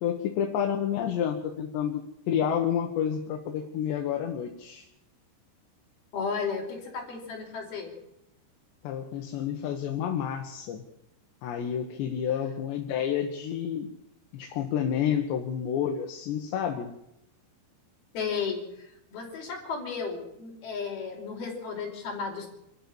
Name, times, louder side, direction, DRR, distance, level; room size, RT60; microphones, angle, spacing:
voice 1, 0.0-4.8 8.8-10.8 11.4-13.9 14.3-16.9, left 9 dB, 80° left, 3 dB, 3.8 m, -29 dB
voice 2, 6.1-7.9 18.1-22.5, left 5 dB, 60° left, 0 dB, 6.4 m, -34 dB
26.0 x 14.0 x 7.4 m, 0.81 s
omnidirectional pair, 5.0 m